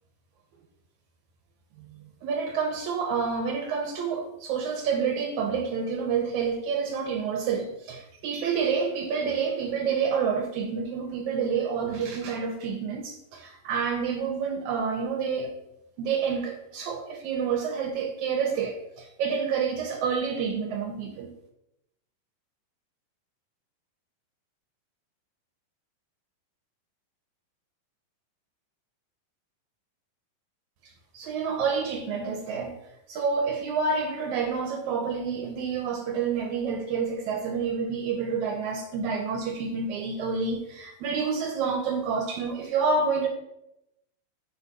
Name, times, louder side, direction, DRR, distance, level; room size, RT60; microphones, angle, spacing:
voice 1, 1.8-15.5 16.0-21.3 31.1-32.7 33.1-43.3, right 5 dB, 75° right, 3 dB, 1.8 m, -28 dB
8.0 x 3.6 x 5.1 m, 0.86 s
omnidirectional pair, 4.1 m